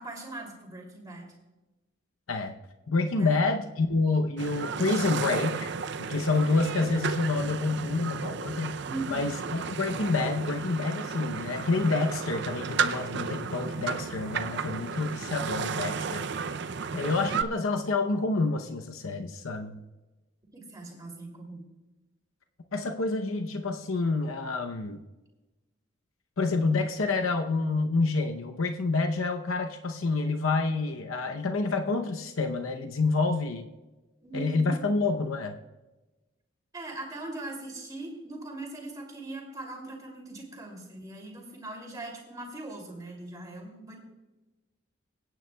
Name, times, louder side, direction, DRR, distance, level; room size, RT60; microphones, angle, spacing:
voice 1, 0.0-1.3 3.1-3.4 8.8-9.2 20.5-21.6 34.2-34.8 36.7-44.0, right 2 dB, 20° right, -1 dB, 2.7 m, -40 dB
voice 2, 2.9-5.7 6.0-16.3 16.9-19.8 22.7-25.0 26.4-33.7 34.3-35.6, left 3 dB, 85° left, 5 dB, 0.7 m, -28 dB
sound 1, 4.4-17.4, right 5 dB, 60° right, 0.5 m, -33 dB
23.5 x 9.2 x 2.3 m, 1.1 s
head